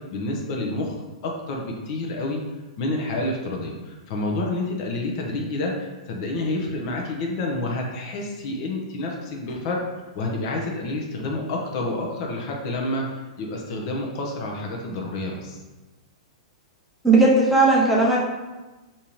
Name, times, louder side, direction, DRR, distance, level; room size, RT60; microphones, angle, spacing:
voice 1, 0.1-1.0 1.2-2.4 2.8-9.8 10.1-15.6, left 2 dB, 50° left, 0 dB, 0.6 m, -29 dB
voice 2, 17.0-18.2, right 2 dB, ahead, -6 dB, 0.7 m, -17 dB
3.6 x 2.7 x 2.9 m, 1.1 s
hypercardioid pair, 135°, 4 cm